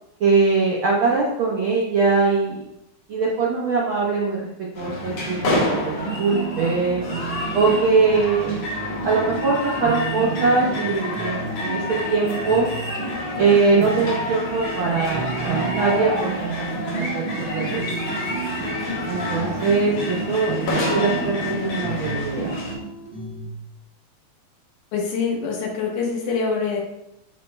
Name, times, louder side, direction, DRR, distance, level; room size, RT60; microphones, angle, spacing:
voice 1, 0.2-2.6 3.1-7.1 7.5-8.5 9.0-12.7 13.4-16.3 16.6-17.8 19.1-20.6 20.9-22.5, right 4 dB, 75° right, -3 dB, 1.1 m, -22 dB
sound 1, 4.7-22.7, left 1 dB, 60° left, 2.5 m, -28 dB
sound 2, 5.9-23.5, right 5 dB, 55° right, 0.6 m, -33 dB
voice 2, 24.9-26.8, left 5 dB, 85° left, -1 dB, 2.8 m, -25 dB
11.0 x 4.4 x 2.2 m, 0.86 s
omnidirectional pair, 3.5 m